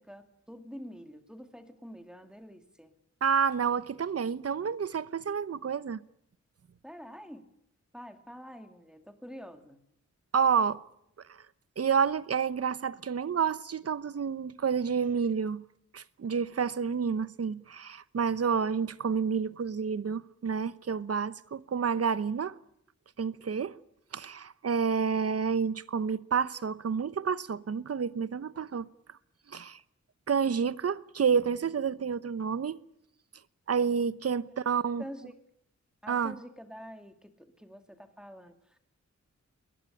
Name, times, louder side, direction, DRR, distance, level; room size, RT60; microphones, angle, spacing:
voice 1, 0.0-2.9 6.8-7.5 7.9-9.8 35.0-35.3 36.0-38.8, equal, 5° right, 2.3 m, -47 dB
voice 2, 3.2-6.0 10.3-10.8 11.3-11.4 11.8-15.6 15.9-22.6 23.2-23.7 24.1-28.9 29.5-29.8 30.3-32.8 33.7-35.0 36.1-36.4, right 6 dB, 55° right, 0.9 m, -29 dB
22.0 x 20.0 x 10.0 m
wide cardioid pair, 120°, 29 cm